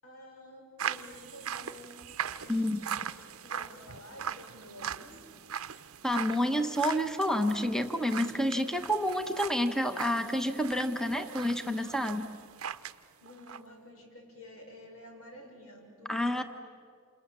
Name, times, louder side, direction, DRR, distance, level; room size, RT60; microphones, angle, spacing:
voice 1, 0.0-3.1 3.4-5.2 13.2-16.4, left 1 dB, 90° left, 1 dB, 6.1 m, -50 dB
sound 1, 0.8-13.0 13.3-13.6, right 8 dB, 90° right, 0.7 m, -40 dB
voice 2, 2.5-2.8 6.0-12.3 16.1-16.4, equal, 5° left, 7 dB, 0.9 m, -29 dB
28.0 x 28.0 x 7.3 m, 2.3 s
head